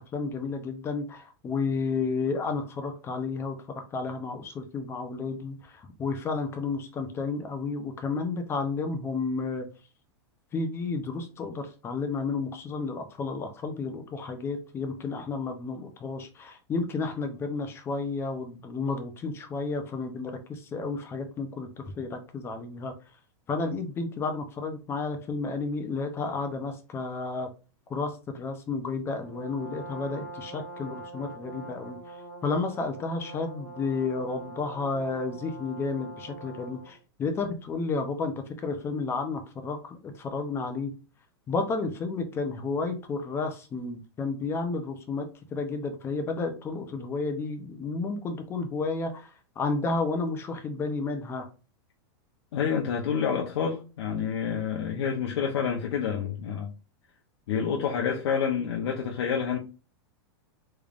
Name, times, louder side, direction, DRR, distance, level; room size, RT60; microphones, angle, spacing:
voice 1, 0.0-9.7 10.5-22.9 23.5-27.5 27.9-32.0 32.4-40.9 41.5-49.3 49.6-51.5, left 4 dB, 15° left, 0.6 m, -32 dB
Brass instrument, 29.2-37.0, right 1 dB, ahead, 1.3 m, -43 dB
voice 2, 52.5-56.7 57.5-59.6, left 7 dB, 80° left, 0.8 m, -28 dB
3.5 x 3.3 x 2.4 m
supercardioid pair, 150°, 14 cm